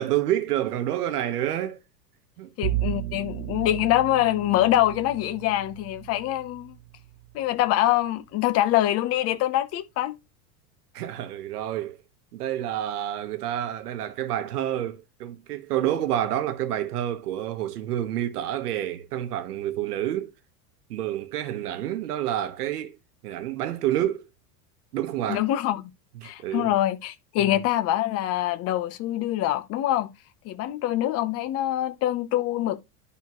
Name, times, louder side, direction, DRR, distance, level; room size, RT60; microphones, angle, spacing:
voice 1, 0.0-1.8 2.4-2.5 10.9-12.0 12.3-20.3 20.9-22.9 23.2-24.3 24.9-25.5 26.2-26.7 27.4-27.6, right 12 dB, 90° right, 1.2 m, -28 dB
voice 2, 2.6-6.8 7.3-10.1 25.3-25.9 26.2-30.1 30.4-32.8, left 14 dB, 35° left, 0.8 m, -24 dB
Bowed string instrument, 2.6-7.7, right 16 dB, 75° right, 0.8 m, -34 dB
11.0 x 4.0 x 3.0 m
supercardioid pair, 140°, 45 cm